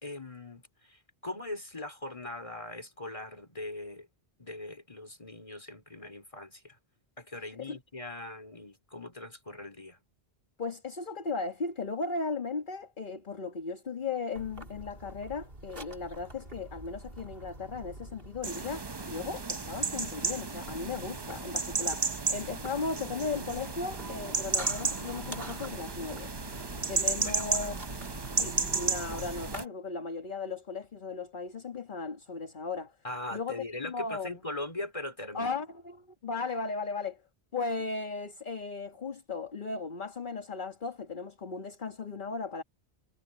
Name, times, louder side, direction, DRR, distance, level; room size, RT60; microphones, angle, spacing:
voice 1, 0.0-4.1 4.4-6.8 7.2-10.0 27.1-27.7 33.0-35.5, left 2 dB, 30° left, 3.6 m, -41 dB
voice 2, 10.6-26.3 26.9-27.8 28.4-32.9 33.3-33.6 33.8-34.3 35.3-37.2 37.5-42.6, left 4 dB, 50° left, 1.7 m, -36 dB
sound 1, 14.4-29.6, right 1 dB, 55° right, 3.4 m, -45 dB
sound 2, 18.4-29.6, right 4 dB, 25° right, 0.7 m, -33 dB
omnidirectional pair, 1.1 m